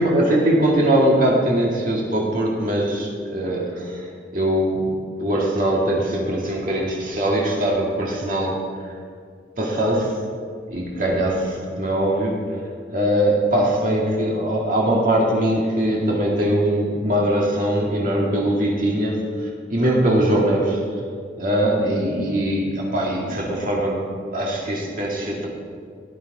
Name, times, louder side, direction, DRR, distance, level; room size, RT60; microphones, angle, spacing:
voice 1, 0.0-4.1 4.3-4.9 5.2-8.9 9.6-10.1 10.7-12.4 12.9-19.1 19.4-20.8 21.4-24.0 24.3-25.5, right 1 dB, 45° right, -3 dB, 2.1 m, -21 dB
16.5 x 10.5 x 4.8 m, 2.1 s
head